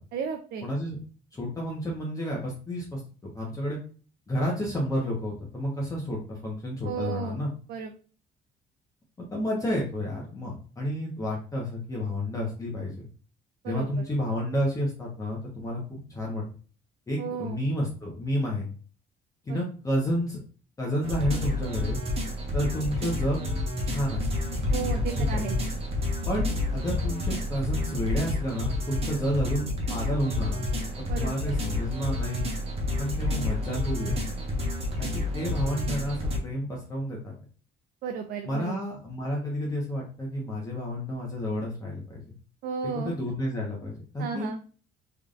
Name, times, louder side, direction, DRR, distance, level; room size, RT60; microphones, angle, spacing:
voice 1, 0.1-0.7 6.8-7.4 7.7-7.9 13.6-14.1 17.2-17.6 19.5-19.6 24.7-25.6 31.1-31.5 38.0-38.8 42.6-43.1 44.2-44.6, right 6 dB, 70° right, 5 dB, 0.5 m, -34 dB
voice 2, 0.6-1.0 1.3-3.0 3.3-3.8 4.3-7.5 9.3-13.1 13.6-15.8 16.1-16.4 17.1-18.7 19.4-20.4 20.8-22.0 22.5-23.4 23.9-24.3 25.3-25.4 26.3-30.6 31.1-32.4 33.0-34.3 35.0-35.1 35.3-37.2 38.4-42.3 42.9-44.5, equal, 20° left, -3 dB, 1.1 m, -30 dB
sound 1, 21.0-36.4, left 2 dB, 35° right, 1.2 m, -29 dB
3.6 x 3.4 x 2.5 m, 0.40 s
cardioid pair, 110°, 17 cm